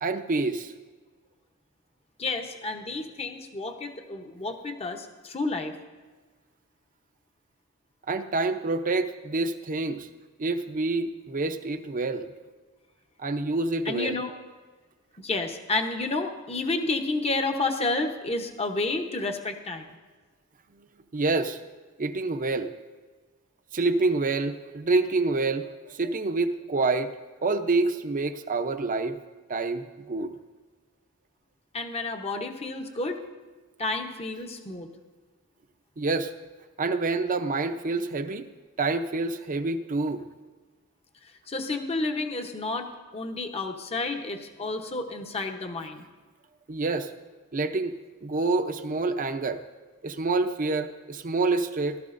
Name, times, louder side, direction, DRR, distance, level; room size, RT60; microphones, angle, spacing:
voice 1, 0.0-0.7 8.1-10.1 10.4-12.3 13.2-14.2 21.1-21.6 22.0-22.7 23.7-27.1 27.4-29.2 29.5-30.3 36.0-36.3 36.8-38.5 38.8-40.2 46.7-47.1 47.5-48.0 48.2-49.6 50.0-52.0, right 3 dB, 40° right, 8 dB, 0.7 m, -27 dB
voice 2, 2.2-5.7 13.9-14.3 15.2-19.9 31.7-33.2 33.8-34.9 41.5-46.0, left 3 dB, 30° left, 4 dB, 0.9 m, -30 dB
18.0 x 12.5 x 2.6 m, 1.4 s
head